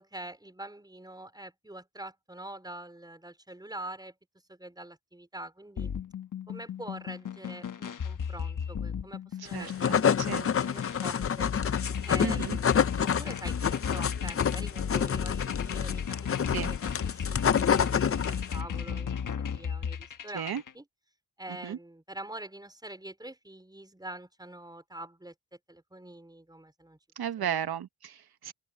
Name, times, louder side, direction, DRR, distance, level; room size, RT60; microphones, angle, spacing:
voice 1, 0.0-4.1 4.5-5.9 6.5-11.5 12.0-19.1 19.4-20.8 21.4-25.3 25.7-27.0 27.4-27.8, right 1 dB, 10° right, 4.6 m, -45 dB
sound 1, 5.8-20.7, left 7 dB, 55° left, 1.2 m, -35 dB
voice 2, 9.4-10.5 12.2-12.6 16.5-16.7 20.3-20.6 21.6-21.8 27.2-28.5, right 9 dB, 70° right, 1.0 m, -35 dB
sound 2, 9.5-18.6, left 7 dB, 35° left, 0.6 m, -28 dB
open air
wide cardioid pair, 115°, 38 cm